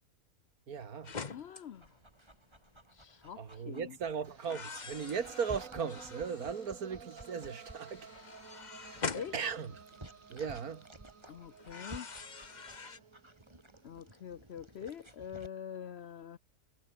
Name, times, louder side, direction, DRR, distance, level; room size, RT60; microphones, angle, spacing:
voice 1, 0.7-1.2 3.4-8.1 8.8-9.7 10.3-10.9, right 6 dB, 85° right, 2.2 m, -38 dB
sound 1, 1.0-1.6 2.5-2.8 4.4-6.7 7.1-10.2 11.6-13.0, left 5 dB, 30° left, 1.2 m, -44 dB
voice 2, 1.3-1.9 2.9-4.0 9.1-9.3 11.3-12.1 13.8-16.4, left 8 dB, 55° left, 0.8 m, -45 dB
Dog, 1.7-15.5, right 1 dB, 20° right, 3.5 m, -55 dB
sound 2, 4.2-14.3, right 6 dB, 65° right, 2.0 m, -53 dB
omnidirectional pair, 1.5 m